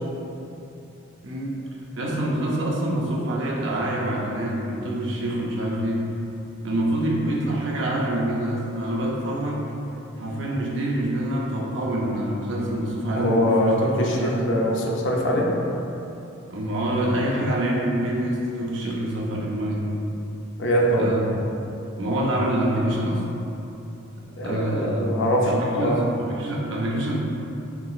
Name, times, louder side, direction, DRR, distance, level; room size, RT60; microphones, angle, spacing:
voice 1, 1.2-1.6 2.0-6.1 6.6-9.7 10.2-14.5 16.5-19.9 21.0-21.3 22.0-23.3 24.4-25.1 25.4-27.2, right 1 dB, 60° right, -3 dB, 0.6 m, -26 dB
voice 2, 13.1-15.5 20.6-21.2 24.4-26.1, equal, 60° left, -2 dB, 0.6 m, -23 dB
5.7 x 3.0 x 2.4 m, 2.8 s
head